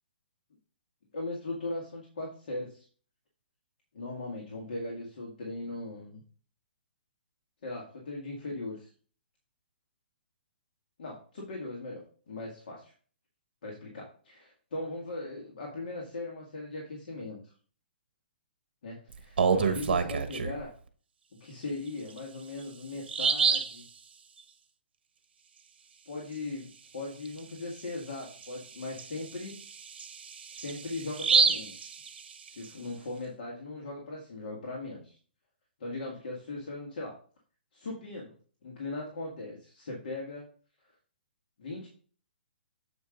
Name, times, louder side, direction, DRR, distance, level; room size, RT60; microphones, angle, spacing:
voice 1, 1.1-2.9 3.9-6.2 7.6-8.9 11.0-12.9 13.6-17.5 18.8-20.7 21.4-23.9 26.1-29.5 30.5-31.9 32.4-35.2 35.8-37.1 37.7-38.3 38.6-40.5 41.6-41.9, left 2 dB, 55° left, -2 dB, 1.9 m, -39 dB
Bird vocalization bird call bird song, 19.1-20.6 22.1-22.2 22.6-22.7 23.1-23.8 27.3-27.4 27.8-27.9 28.4-32.7, right 6 dB, 65° right, 1.1 m, -28 dB
7.9 x 5.1 x 3.8 m, 0.43 s
hypercardioid pair, 170°, 6 cm